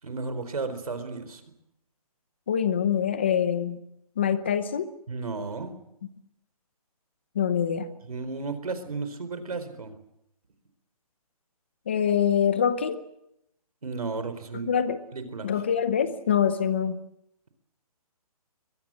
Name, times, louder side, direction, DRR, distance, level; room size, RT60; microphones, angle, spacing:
voice 1, 0.0-1.4 5.1-5.7 8.1-9.9 13.8-14.7 15.1-15.5, right 4 dB, 75° right, 11 dB, 4.3 m, -33 dB
voice 2, 2.5-3.8 4.2-4.9 7.3-7.9 11.9-13.0 14.6-15.0 15.4-17.0, left 8 dB, 20° left, 13 dB, 0.8 m, -24 dB
23.0 x 21.0 x 7.6 m, 0.81 s
hypercardioid pair, 180°, 20 cm